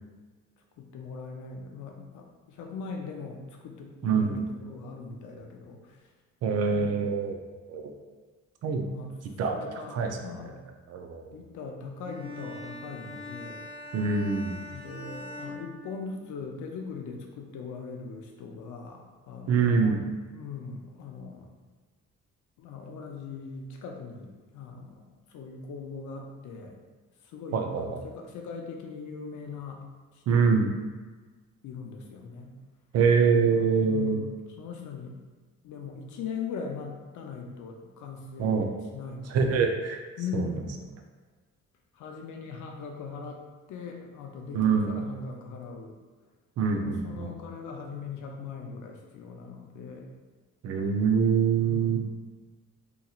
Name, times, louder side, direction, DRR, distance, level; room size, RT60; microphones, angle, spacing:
voice 1, 0.8-6.0 6.7-6.9 8.8-9.1 9.5-10.6 11.3-13.7 14.7-20.0 20.3-21.5 22.6-25.0 25.3-26.8 27.2-29.8 30.1-30.6 31.6-32.5 33.5-35.2 35.6-39.7 40.2-40.8 41.9-46.0 46.7-50.1 51.5-52.1, left 5 dB, 75° left, 2 dB, 0.6 m, -40 dB
voice 2, 4.0-4.4 6.4-7.3 7.7-7.9 8.6-8.8 9.4-9.6 9.9-10.1 10.9-11.4 13.9-14.6 19.5-20.1 27.5-28.0 30.3-30.7 32.9-34.2 38.4-38.7 39.3-40.0 40.3-40.4 44.5-44.9 46.6-47.3 50.6-52.1, right 5 dB, 55° right, 4 dB, 0.5 m, -24 dB
Bowed string instrument, 12.0-16.5, left 2 dB, 20° left, 0.5 m, -42 dB
3.0 x 2.7 x 2.3 m, 1.3 s
cardioid pair, 90°, 30 cm